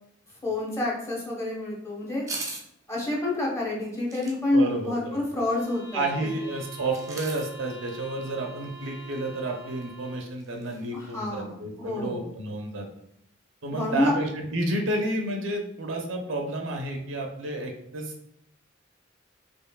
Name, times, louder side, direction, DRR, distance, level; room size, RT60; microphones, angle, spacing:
voice 1, 0.4-2.3 2.9-6.3 10.9-12.2 13.7-14.1, left 2 dB, 15° left, -4 dB, 1.0 m, -28 dB
sound 1, 2.3-2.6 4.1-4.4 6.9-7.5 9.1-9.2 9.4-9.5 9.8-9.9 10.4-10.8 11.1-11.2, right 3 dB, 15° right, 0.5 m, -37 dB
voice 2, 4.5-5.2 5.9-12.8 13.6-18.1, right 2 dB, 85° right, 2 dB, 0.7 m, -31 dB
sound 2, 5.4-10.4, right 2 dB, 65° left, 1.1 m, -45 dB
4.4 x 3.0 x 2.3 m, 0.74 s
head